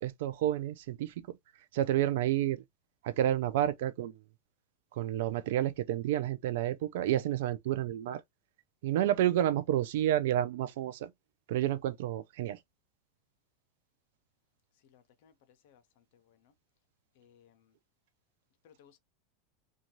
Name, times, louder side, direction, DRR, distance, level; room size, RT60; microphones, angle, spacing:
voice 1, 0.0-1.1 1.7-2.6 3.0-4.1 5.0-8.2 8.8-11.1 11.5-12.6, right 12 dB, 75° right, 0.3 m, -30 dB
voice 2, 14.9-15.3 15.6-15.8 16.3-16.4 17.2-17.6 18.6-19.0, left 8 dB, 65° left, 0.6 m, -62 dB
2.6 x 2.3 x 3.0 m
supercardioid pair, 140°, 0 cm